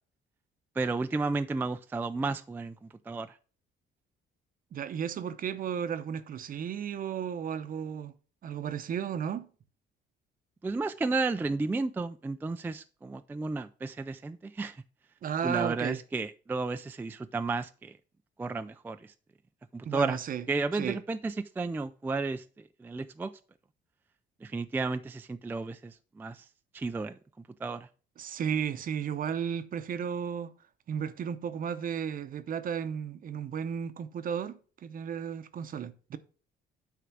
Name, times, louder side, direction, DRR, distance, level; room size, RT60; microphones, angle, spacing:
voice 1, 0.8-2.7 3.1-3.4 10.6-14.8 15.4-17.9 18.4-19.1 19.7-20.2 20.5-22.4 22.8-23.3 24.4-26.5 26.7-27.2 27.6-27.9, right 3 dB, 10° right, 0.3 m, -32 dB
voice 2, 4.7-8.1 8.4-9.5 15.2-16.0 19.8-20.5 20.8-21.0 28.2-30.5 30.9-36.2, right 8 dB, 45° right, 0.7 m, -34 dB
9.2 x 3.7 x 6.0 m
cardioid pair, 125°, 19 cm